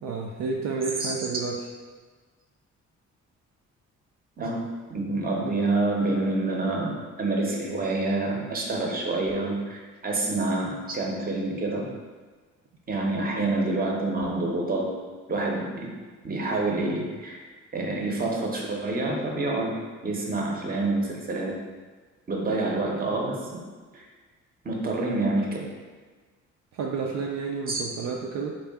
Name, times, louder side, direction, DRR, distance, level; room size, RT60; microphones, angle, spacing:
voice 1, 0.0-1.6 26.7-28.5, right 4 dB, 65° right, -1 dB, 0.5 m, -30 dB
voice 2, 4.4-6.9 7.2-11.9 12.9-15.0 15.3-15.9 16.2-17.4 17.7-19.8 20.0-21.5 22.3-23.6 23.9-24.1 24.6-25.7 27.7-27.8, right 2 dB, 30° right, 0 dB, 0.8 m, -27 dB
3.6 x 2.4 x 3.5 m, 1.4 s
cardioid pair, 90°, 30 cm